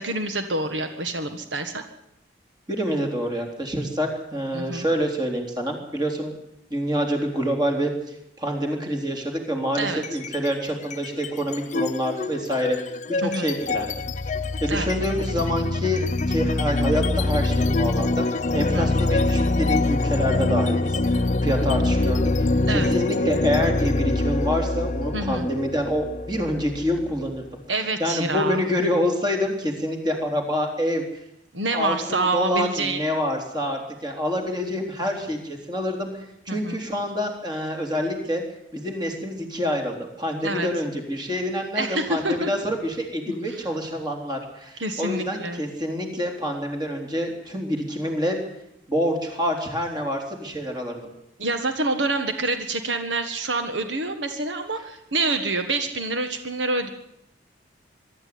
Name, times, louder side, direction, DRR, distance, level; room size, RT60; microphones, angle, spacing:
voice 1, 0.0-1.8 4.5-4.8 9.7-10.0 13.2-13.4 14.7-14.9 18.6-18.9 22.7-22.9 25.1-25.5 27.7-28.6 31.5-33.0 36.5-36.8 40.4-40.7 41.7-42.5 44.8-45.6 51.4-56.9, right 2 dB, 75° right, 7 dB, 1.6 m, -27 dB
voice 2, 2.7-6.4 6.7-12.8 13.1-27.4 28.0-31.0 31.7-36.1 36.5-38.4 38.7-48.4 48.9-51.1, equal, 25° right, 2 dB, 3.7 m, -27 dB
sound 1, 9.9-10.5 10.8-27.4, left 2 dB, 40° left, 0.7 m, -24 dB
23.5 x 12.5 x 9.5 m, 0.81 s
head